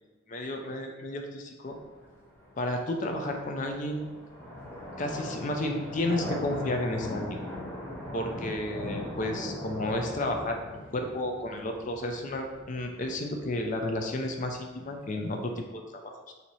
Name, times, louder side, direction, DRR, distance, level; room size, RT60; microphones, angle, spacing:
voice 1, 0.3-1.8 2.6-4.0 5.0-7.4 8.1-16.3, left 1 dB, 35° left, 3 dB, 0.4 m, -32 dB
sound 1, 1.6-15.6, left 1 dB, 10° left, 0.8 m, -40 dB
3.0 x 2.7 x 4.0 m, 1.2 s
head